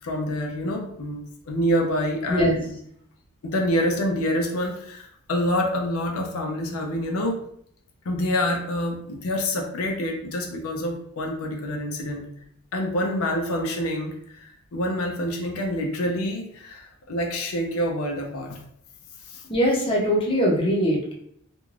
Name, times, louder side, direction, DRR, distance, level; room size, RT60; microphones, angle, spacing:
voice 1, 0.0-2.7 3.4-7.4 8.0-12.2 12.7-18.6 19.2-19.4, equal, 85° left, 1 dB, 0.5 m, -27 dB
voice 2, 19.5-21.1, equal, 25° left, -2 dB, 0.6 m, -21 dB
2.5 x 2.2 x 3.1 m, 0.67 s
head